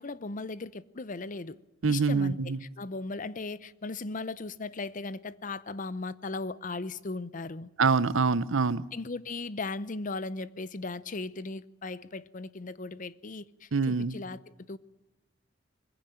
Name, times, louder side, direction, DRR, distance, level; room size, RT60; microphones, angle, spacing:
voice 1, 0.0-1.6 1.9-7.7 8.9-14.4 14.7-14.8, left 3 dB, 40° left, 0.7 m, -37 dB
voice 2, 1.8-2.6 7.8-8.8 13.7-14.2, right 4 dB, 85° right, 0.7 m, -25 dB
21.0 x 15.5 x 8.9 m
head